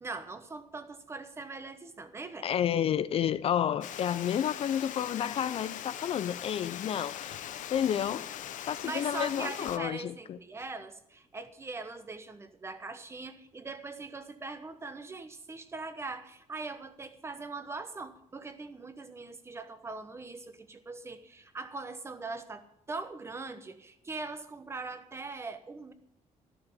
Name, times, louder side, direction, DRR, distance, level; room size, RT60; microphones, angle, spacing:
voice 1, 0.0-2.5 8.6-25.9, right 3 dB, 20° right, 1.0 m, -41 dB
voice 2, 2.4-7.4 7.7-8.3 8.7-10.4, left 9 dB, 50° left, 0.4 m, -30 dB
Water, 3.8-9.8, left 11 dB, 85° left, 0.8 m, -41 dB
13.0 x 6.8 x 9.9 m
cardioid pair, 170°, 13 cm